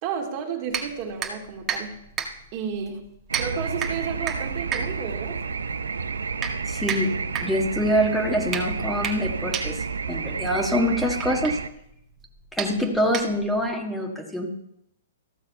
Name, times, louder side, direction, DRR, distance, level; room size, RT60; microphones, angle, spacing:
voice 1, 0.0-2.0 2.5-3.0 3.4-5.4, right 7 dB, 45° right, 1 dB, 2.3 m, -32 dB
sound 1, 0.7-13.7, right 6 dB, 25° right, 1.7 m, -34 dB
sound 2, 3.3-11.7, right 5 dB, 80° right, 0.6 m, -30 dB
voice 2, 6.7-9.8 10.1-11.6 12.5-14.5, equal, 5° left, 1 dB, 1.6 m, -25 dB
14.5 x 6.3 x 5.6 m, 0.78 s
hypercardioid pair, 120°, 0 cm